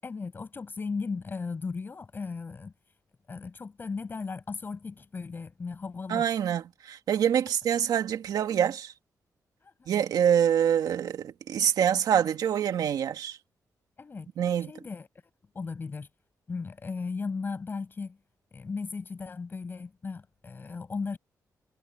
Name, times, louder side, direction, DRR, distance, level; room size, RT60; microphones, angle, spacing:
voice 1, 0.0-2.7 3.3-6.3 9.6-9.9 14.0-14.3 14.7-15.1 15.5-16.1 16.5-18.2 18.5-21.2, left 4 dB, 30° left, 7.0 m, -36 dB
voice 2, 6.1-8.9 9.9-13.4 14.4-14.7, right 9 dB, 90° right, 2.3 m, -25 dB
wide cardioid pair, 150°, 6 cm